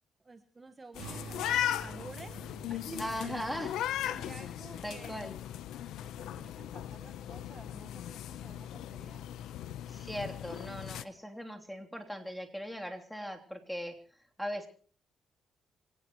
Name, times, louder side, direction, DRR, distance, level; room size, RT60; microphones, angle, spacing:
voice 1, 0.2-2.4 2.7-3.5 4.0-5.2 6.0-9.3, right 3 dB, 25° right, 7 dB, 1.6 m, -50 dB
sound 1, 0.9-7.6, right 3 dB, 75° right, 3.8 m, -50 dB
sound 2, 1.0-11.0, left 11 dB, 85° left, 0.9 m, -38 dB
voice 2, 3.0-3.7 4.8-5.3 9.9-14.0 14.4-14.7, equal, ahead, 3 dB, 3.3 m, -39 dB
25.5 x 17.5 x 3.1 m, 0.43 s
cardioid pair, 90°, 0 cm